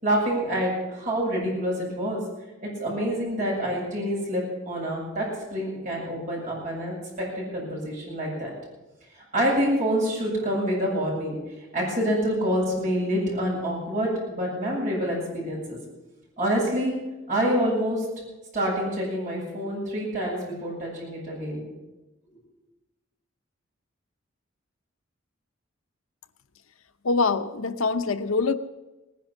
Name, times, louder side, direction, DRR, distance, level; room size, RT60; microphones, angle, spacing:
voice 1, 0.0-2.2 2.6-8.5 9.2-11.4 11.7-15.8 16.4-16.9 17.3-18.0 18.5-21.6, equal, 40° right, -4 dB, 7.7 m, -27 dB
voice 2, 27.0-28.5, left 4 dB, 85° left, 10 dB, 0.8 m, -24 dB
18.5 x 10.5 x 7.3 m, 1.1 s
head